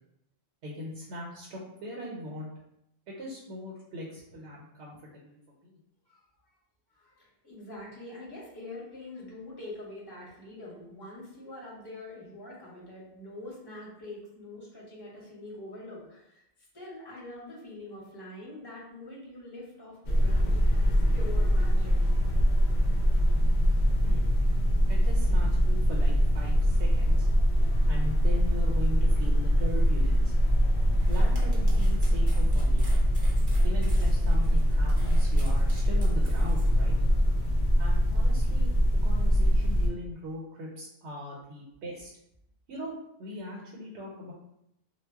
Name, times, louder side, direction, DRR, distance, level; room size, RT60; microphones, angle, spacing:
voice 1, 0.6-2.5 3.1-5.4 5.6-5.8 24.0-24.3 24.9-27.3 27.9-30.3 31.1-32.9 33.6-37.0 37.8-42.1 42.7-42.9 43.2-44.3, left 1 dB, 80° right, -3 dB, 0.9 m, -40 dB
voice 2, 7.0-16.4 16.7-20.6 20.8-21.9, left 1 dB, 25° left, -6 dB, 0.8 m, -44 dB
sound 1, 20.1-39.9, equal, 65° left, 0.7 m, -23 dB
sound 2, 30.9-36.7, right 1 dB, 30° right, 0.5 m, -50 dB
2.2 x 2.0 x 3.4 m, 0.80 s
omnidirectional pair, 1.1 m